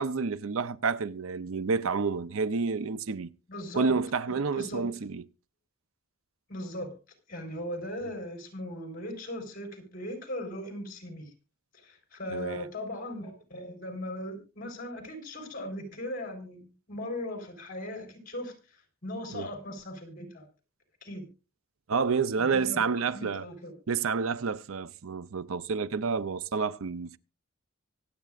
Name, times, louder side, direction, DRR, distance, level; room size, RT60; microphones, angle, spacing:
voice 1, 0.0-3.3 3.7-5.2 12.3-12.7 19.3-19.5 21.9-23.5 23.9-27.2, right 5 dB, 85° right, 0.6 m, -29 dB
voice 2, 3.5-5.0 6.5-6.9 7.3-11.3 11.7-20.5 21.0-21.3 22.4-23.7, left 1 dB, 45° left, 4.1 m, -39 dB
24.5 x 8.5 x 2.5 m
head